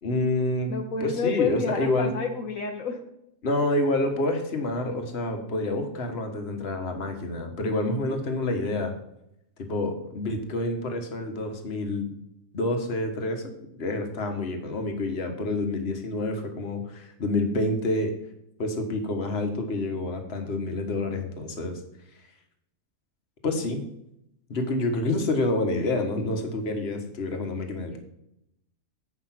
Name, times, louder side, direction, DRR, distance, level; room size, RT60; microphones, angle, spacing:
voice 1, 0.0-2.1 3.4-8.9 9.6-12.2 12.5-13.5 13.8-18.1 18.6-21.8 23.4-23.8 24.5-28.0, left 2 dB, 50° left, 4 dB, 1.6 m, -28 dB
voice 2, 0.7-3.0 27.9-28.0, left 4 dB, 75° left, 3 dB, 1.4 m, -29 dB
8.3 x 6.1 x 5.9 m, 0.81 s
omnidirectional pair, 1.4 m